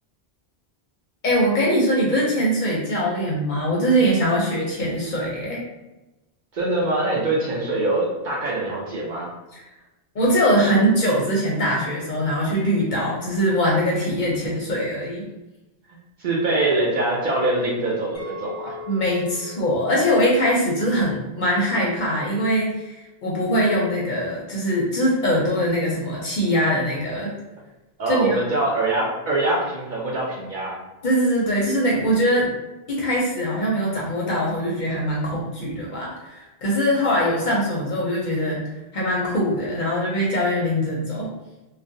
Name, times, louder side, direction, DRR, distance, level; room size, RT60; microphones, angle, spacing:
voice 1, 1.2-5.6 9.5-9.6 10.1-15.3 18.9-27.3 28.1-28.4 31.0-32.5 32.9-41.3, equal, 55° left, -4 dB, 0.6 m, -22 dB
voice 2, 6.5-9.3 16.2-18.8 28.0-30.8, right 2 dB, 55° right, -5 dB, 0.6 m, -23 dB
Chink clink, 18.1-22.5 23.0-23.3, left 3 dB, 5° left, 0.5 m, -42 dB
2.4 x 2.0 x 2.5 m, 1.0 s
omnidirectional pair, 1.1 m